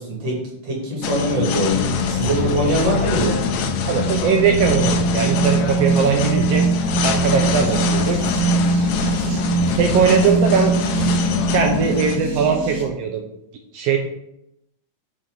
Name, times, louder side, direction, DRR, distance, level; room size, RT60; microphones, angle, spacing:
voice 1, 0.0-3.4, right 1 dB, 50° right, -3 dB, 3.0 m, -23 dB
sound 1, 1.0-12.2, left 7 dB, 85° left, 1.4 m, -25 dB
sound 2, 1.7-12.8, right 3 dB, 70° right, 3.7 m, -23 dB
voice 2, 3.9-6.7 7.0-8.2 9.8-10.7 11.5-13.2 13.7-14.0, right 6 dB, 90° right, 3 dB, 1.4 m, -20 dB
8.8 x 4.2 x 3.8 m, 0.80 s
omnidirectional pair, 3.6 m